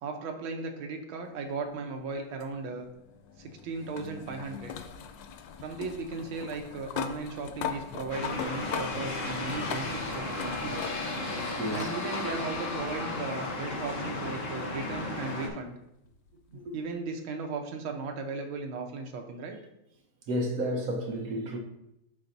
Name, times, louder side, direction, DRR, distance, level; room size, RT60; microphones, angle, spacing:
voice 1, 0.0-2.9 3.4-4.8 5.6-11.0 11.7-15.8 16.7-19.6, right 4 dB, 75° right, 1.6 m, -36 dB
sound 1, 2.4-11.3 11.7-11.9 13.3-13.4 16.3-16.4, left 8 dB, 75° left, 1.1 m, -40 dB
sound 2, 8.1-15.5, left 2 dB, 50° left, 1.1 m, -34 dB
voice 2, 11.6-11.9 16.5-16.8 20.3-21.6, equal, 55° right, 1.0 m, -31 dB
11.5 x 4.0 x 2.6 m
omnidirectional pair, 2.3 m